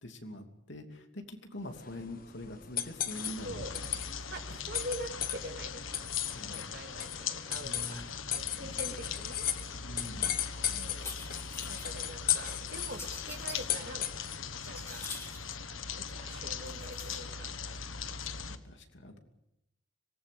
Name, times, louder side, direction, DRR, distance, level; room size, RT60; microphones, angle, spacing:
voice 1, 0.0-3.9 4.5-4.6 6.2-6.7 7.6-8.8 9.8-10.4 17.7-19.2, left 1 dB, 65° left, 4 dB, 2.9 m, -45 dB
sound 1, 1.7-14.5, left 11 dB, 45° left, 1.3 m, -37 dB
sound 2, 3.1-18.6, left 6 dB, 85° left, 1.4 m, -41 dB
voice 2, 4.3-6.1 6.5-8.0 8.3-9.5 10.7-11.1 11.6-14.1 14.6-15.1 15.9-17.5, right 1 dB, 55° right, 5 dB, 2.3 m, -44 dB
sound 3, 10.9-11.9 12.7-13.7 14.2-15.5 16.6-17.2, left 3 dB, 15° left, 2.0 m, -45 dB
25.5 x 19.0 x 6.9 m, 0.84 s
head